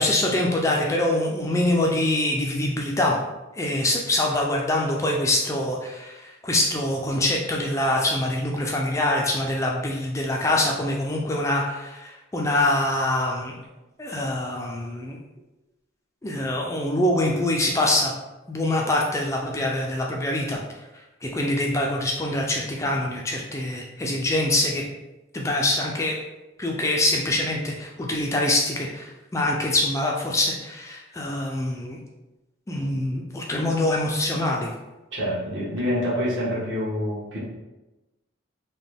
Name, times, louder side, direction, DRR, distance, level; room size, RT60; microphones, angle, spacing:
voice 1, 0.0-3.2 3.5-13.5 14.0-15.2 16.2-18.1 18.5-20.6 21.2-24.8 25.3-26.1 26.6-32.0 32.7-34.7, left 1 dB, 15° left, -1 dB, 0.3 m, -24 dB
voice 2, 35.1-37.4, equal, 60° right, -7 dB, 1.4 m, -26 dB
3.9 x 2.1 x 3.4 m, 1.0 s
head